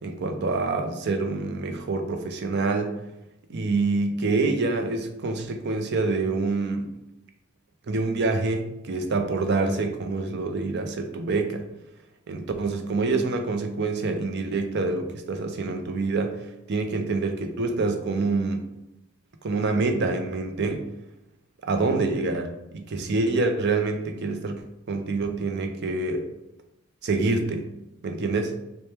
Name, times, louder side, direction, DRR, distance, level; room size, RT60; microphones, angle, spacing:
voice 1, 0.0-2.9 3.5-6.9 7.9-11.6 12.3-16.4 16.7-18.6 19.4-20.8 21.6-24.6 24.9-26.3 27.0-27.7 28.0-28.5, right 3 dB, 50° right, 6 dB, 0.5 m, -26 dB
4.2 x 2.2 x 3.3 m, 0.90 s
head